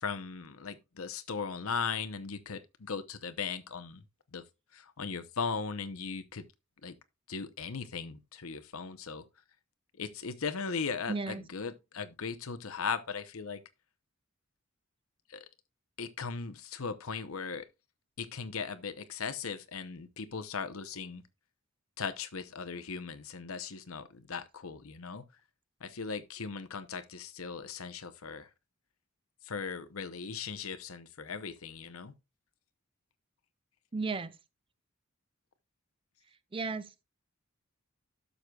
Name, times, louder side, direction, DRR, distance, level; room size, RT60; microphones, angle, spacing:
voice 1, 0.0-4.0 4.3-4.4 4.7-6.4 6.8-6.9 7.3-9.2 10.0-13.6 15.3-15.4 16.0-17.7 18.2-21.2 22.0-25.2 25.8-28.5 29.4-32.1, left 5 dB, 85° left, 0.8 m, -38 dB
voice 2, 11.1-11.4 33.9-34.4 36.5-37.0, right 3 dB, 25° right, 0.6 m, -34 dB
12.0 x 6.6 x 2.4 m
head